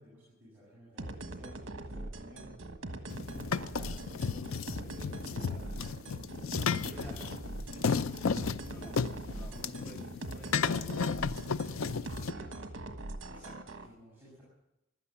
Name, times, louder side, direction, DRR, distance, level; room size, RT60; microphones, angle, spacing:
voice 1, 0.0-2.6 2.9-4.5 4.7-6.0 6.5-7.3 7.6-7.9 13.3-14.4, equal, 10° right, -9 dB, 6.4 m, -54 dB
sound 1, 1.0-13.9, right 2 dB, 65° right, 1.4 m, -42 dB
sound 2, 3.1-12.3, left 5 dB, 75° left, 0.5 m, -34 dB
voice 2, 6.8-7.2 8.7-12.6, right 1 dB, 5° left, 1 dB, 2.0 m, -52 dB
15.5 x 12.0 x 7.4 m, 0.91 s
head